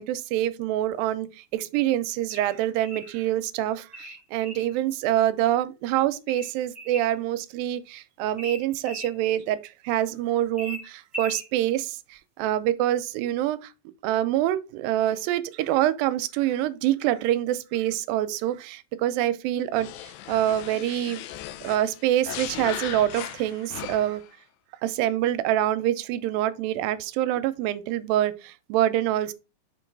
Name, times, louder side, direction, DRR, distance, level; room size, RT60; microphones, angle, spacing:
voice 1, 0.0-13.6 14.0-19.9 20.3-21.2 21.6-24.2 24.8-29.3, right 13 dB, 85° right, 2.2 m, -26 dB
sound 1, 2.3-3.1 3.9-4.7 6.3-7.1 8.4-9.1 10.6-11.5, equal, 5° left, 1.3 m, -39 dB
sound 2, 19.7-24.3, left 13 dB, 80° left, 2.2 m, -38 dB
5.4 x 3.8 x 4.5 m
omnidirectional pair, 4.1 m